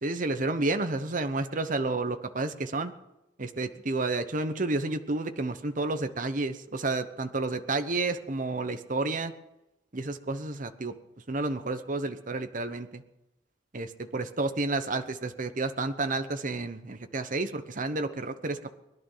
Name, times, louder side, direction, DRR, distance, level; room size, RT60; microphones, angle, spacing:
voice 1, 0.0-2.9 3.4-9.3 9.9-10.9 11.3-13.0 13.7-18.8, right 2 dB, 45° right, 9 dB, 1.0 m, -30 dB
21.0 x 11.5 x 5.7 m, 0.92 s
head